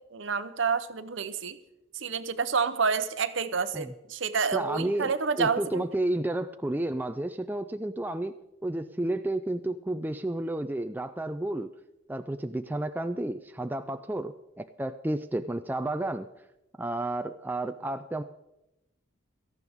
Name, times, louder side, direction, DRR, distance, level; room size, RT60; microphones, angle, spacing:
voice 1, 0.1-1.6 1.9-5.8, right 5 dB, 65° right, 12 dB, 0.8 m, -29 dB
voice 2, 4.5-5.1 5.4-8.4 8.6-11.7 12.1-16.3 16.8-18.2, right 1 dB, 10° right, 8 dB, 0.3 m, -31 dB
17.5 x 13.5 x 3.6 m, 0.92 s
head